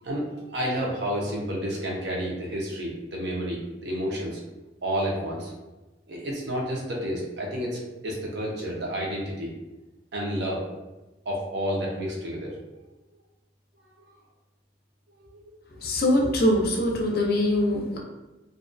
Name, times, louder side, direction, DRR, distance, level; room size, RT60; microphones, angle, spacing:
voice 1, 0.0-4.4 4.8-5.5 6.1-9.5 10.1-10.8 11.3-12.5 15.2-15.4, equal, 65° right, -3 dB, 0.6 m, -30 dB
voice 2, 15.8-18.0, left 1 dB, 55° left, 0 dB, 0.5 m, -23 dB
2.4 x 2.3 x 2.4 m, 1.1 s
head